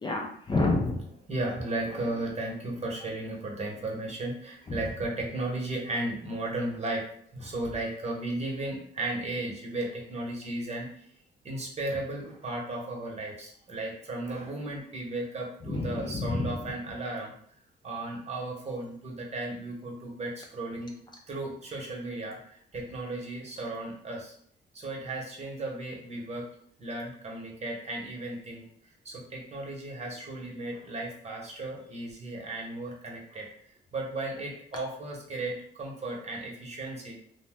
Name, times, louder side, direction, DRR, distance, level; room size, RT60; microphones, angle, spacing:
voice 1, 0.0-1.0 4.7-4.8 15.7-16.6, left 2 dB, 20° left, 0 dB, 0.5 m, -28 dB
voice 2, 1.3-7.0 7.3-11.1 11.4-17.3 17.8-21.0 21.3-24.3 24.7-26.5 26.8-33.5 33.9-37.1, right 2 dB, 35° right, -1 dB, 0.9 m, -35 dB
2.6 x 2.1 x 3.5 m, 0.62 s
cardioid pair, 90°, 20 cm